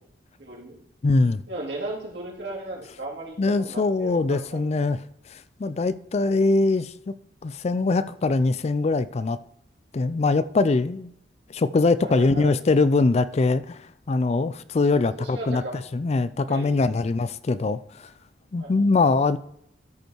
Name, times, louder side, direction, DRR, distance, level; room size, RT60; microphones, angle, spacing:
voice 1, 0.4-0.8 1.5-4.7 12.0-12.5 15.2-15.8 16.5-17.0 18.6-18.9, right 2 dB, 75° right, 3.0 m, -36 dB
voice 2, 1.0-1.4 3.4-5.0 5.3-7.1 7.4-9.4 9.9-11.1 11.5-18.1 18.5-19.4, left 3 dB, 35° left, 0.4 m, -22 dB
13.0 x 5.4 x 4.6 m
head